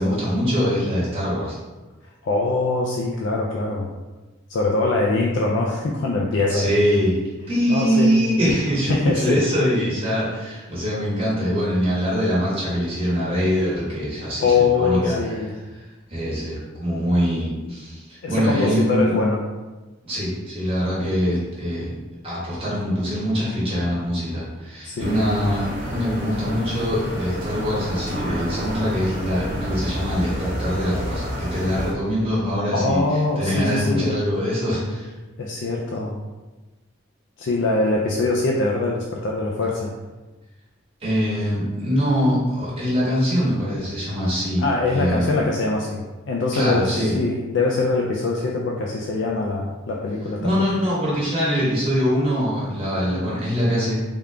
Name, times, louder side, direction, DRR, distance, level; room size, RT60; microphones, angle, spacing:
voice 1, 0.0-1.6 6.5-7.2 7.5-15.2 16.1-19.1 20.0-21.9 22.2-33.0 33.4-35.1 41.0-45.3 46.5-47.1 50.4-54.0, equal, 30° right, -8 dB, 1.2 m, -23 dB
voice 2, 2.2-3.9 4.5-6.7 7.7-8.3 8.9-9.4 14.4-15.5 18.2-19.4 24.8-25.2 32.7-34.1 35.4-36.2 37.4-39.9 44.6-50.7, left 3 dB, 70° left, -2 dB, 0.4 m, -23 dB
sound 1, 25.0-31.9, equal, 45° right, 0.8 m, -30 dB
3.6 x 2.3 x 3.2 m, 1.2 s
head